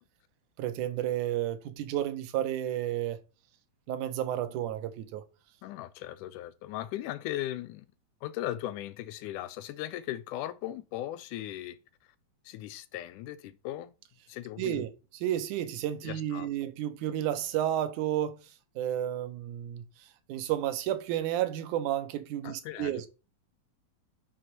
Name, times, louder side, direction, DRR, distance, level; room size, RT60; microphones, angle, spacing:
voice 1, 0.6-3.2 3.9-5.2 14.6-18.5 18.8-23.1, right 11 dB, 80° right, 2.3 m, -32 dB
voice 2, 5.6-7.9 8.2-11.8 12.5-13.9 14.3-14.9 16.0-16.5 22.4-23.1, left 13 dB, 80° left, 2.0 m, -38 dB
6.4 x 3.9 x 6.0 m
omnidirectional pair, 3.6 m